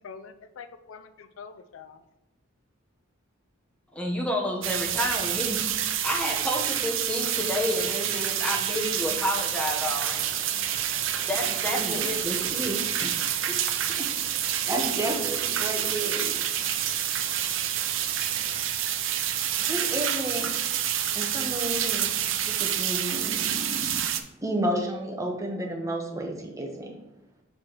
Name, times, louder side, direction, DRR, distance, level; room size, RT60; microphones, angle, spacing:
voice 1, 0.0-2.0, left 5 dB, 75° left, 10 dB, 0.4 m, -45 dB
voice 2, 3.9-10.2 11.3-12.5 13.0-13.1 13.7-13.8, left 1 dB, 5° left, 0 dB, 0.9 m, -30 dB
sound 1, 4.6-24.2, right 10 dB, 70° right, 0.5 m, -28 dB
sound 2, 9.8-18.6, equal, 25° left, 2.1 m, -50 dB
voice 3, 12.2-12.8 14.4-16.3 19.6-20.5 21.1-22.1 22.4-23.9 24.4-26.9, right 1 dB, 15° right, 0 dB, 1.0 m, -31 dB
6.5 x 5.9 x 3.0 m, 0.95 s
head